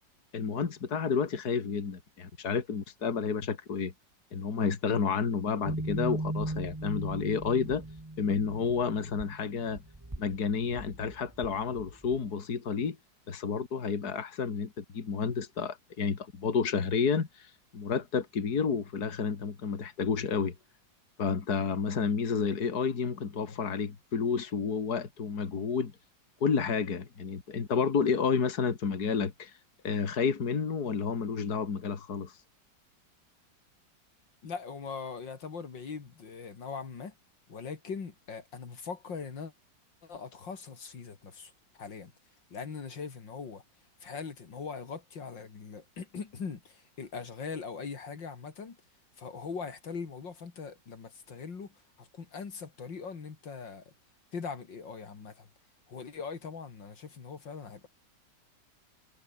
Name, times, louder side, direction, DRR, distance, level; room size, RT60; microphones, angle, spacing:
voice 1, 0.3-3.9 4.3-7.8 8.2-9.8 10.2-13.0 13.3-20.5 21.2-25.9 26.4-29.6 29.8-32.4, left 6 dB, 55° left, 2.7 m, -30 dB
sound 1, 5.7-12.2, right 2 dB, 10° right, 1.6 m, -38 dB
voice 2, 34.4-37.1 37.5-39.5 40.0-41.5 41.8-42.1 42.5-43.6 44.0-48.8 49.2-53.9 54.3-55.5 55.9-57.9, left 5 dB, 80° left, 3.3 m, -41 dB
omnidirectional pair, 2.0 m